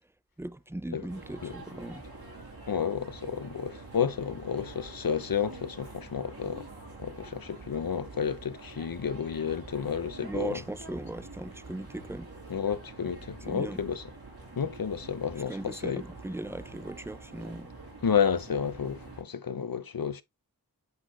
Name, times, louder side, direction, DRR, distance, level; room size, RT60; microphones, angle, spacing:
voice 1, 0.4-2.0 10.2-12.3 13.5-13.9 15.5-17.7, right 1 dB, 5° right, 0.5 m, -38 dB
sound 1, 1.1-19.2, right 3 dB, 85° right, 3.2 m, -46 dB
voice 2, 2.7-6.7 7.0-10.6 12.5-14.0 14.6-16.0 18.0-20.2, left 7 dB, 70° left, 0.9 m, -31 dB
8.2 x 5.3 x 2.2 m
wide cardioid pair, 60°, 36 cm